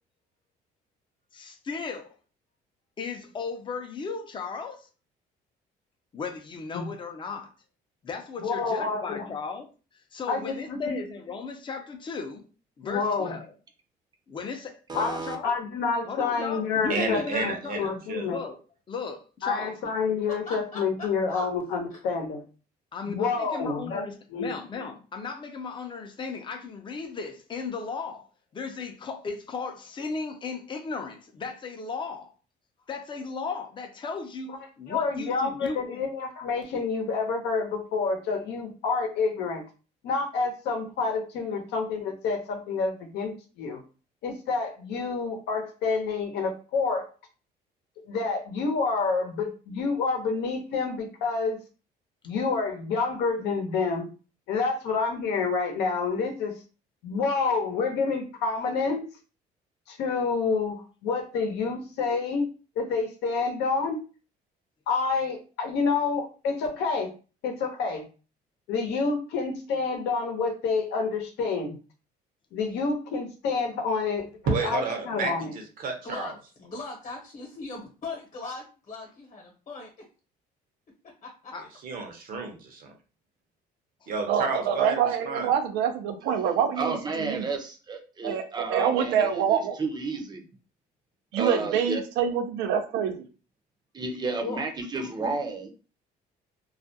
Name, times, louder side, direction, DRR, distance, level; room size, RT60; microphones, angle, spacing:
voice 1, 1.3-2.1 3.0-4.9 6.1-7.5 8.0-9.7 10.1-12.4 12.8-13.5 14.3-15.5 16.0-17.8 18.3-18.6 18.9-19.7 22.9-28.2 28.5-32.3 32.9-36.0 41.5-41.6 81.5-81.7 84.0-84.1 86.3-86.4 94.4-94.6, left 4 dB, 30° left, 0.5 m, -36 dB
voice 2, 8.4-9.3 10.3-11.0 12.9-13.3 14.9-15.1 15.4-18.4 19.4-22.4 23.1-24.0 24.3-24.5 34.9-39.6 40.0-43.3 43.6-43.8 44.2-47.1 48.1-51.6 52.2-54.1 54.5-56.5 57.0-59.0 59.9-62.5 62.8-64.0 64.9-67.1 67.4-68.0 68.7-71.8 72.5-74.3 74.6-75.5, left 4 dB, 80° left, 0.7 m, -28 dB
voice 3, 14.9-15.4 86.8-90.4 91.3-92.0 93.9-95.7, right 3 dB, 25° right, 0.5 m, -32 dB
voice 4, 16.9-18.3 74.5-76.3 81.8-82.9 84.1-85.0 85.2-85.5, right 4 dB, 55° right, 0.7 m, -31 dB
voice 5, 20.5-21.5 21.9-22.0 76.0-76.4 76.6-79.4 79.7-79.9, left 3 dB, 45° left, 0.9 m, -39 dB
voice 6, 84.3-87.4 88.2-89.8 91.3-93.3, right 8 dB, 90° right, 0.5 m, -26 dB
2.3 x 2.1 x 2.7 m
cardioid pair, 110°, 17 cm